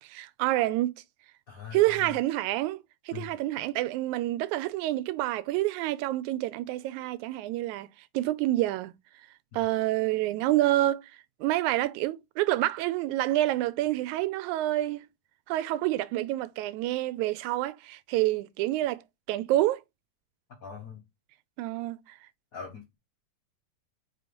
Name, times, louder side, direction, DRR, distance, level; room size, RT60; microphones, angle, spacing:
voice 1, 0.0-0.9 1.7-7.9 8.1-8.9 9.5-11.1 11.4-15.1 15.5-19.0 19.3-19.8 21.6-22.2, right 16 dB, 85° right, 2.0 m, -28 dB
voice 2, 1.5-2.2 3.1-3.4 20.6-21.0 22.5-22.9, left 6 dB, 85° left, 0.7 m, -41 dB
5.2 x 3.7 x 5.2 m
omnidirectional pair, 3.3 m